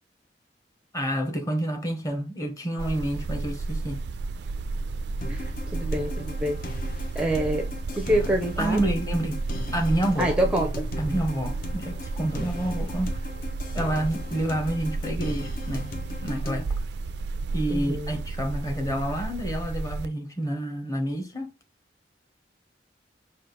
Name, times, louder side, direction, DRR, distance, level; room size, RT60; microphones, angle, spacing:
voice 1, 0.9-4.0 8.6-9.4 9.7-10.3 11.0-13.2 13.7-15.9 16.2-16.7 17.5-21.5, right 1 dB, 20° left, 1.0 m, -28 dB
sound 1, 2.8-20.1, right 3 dB, 70° right, 0.4 m, -32 dB
sound 2, 5.2-16.6, left 2 dB, 55° left, 0.9 m, -38 dB
voice 2, 5.3-6.6 7.1-7.7 7.9-8.8 10.2-10.9 17.7-18.1, right 1 dB, 5° right, 0.5 m, -26 dB
5.0 x 2.4 x 3.8 m
head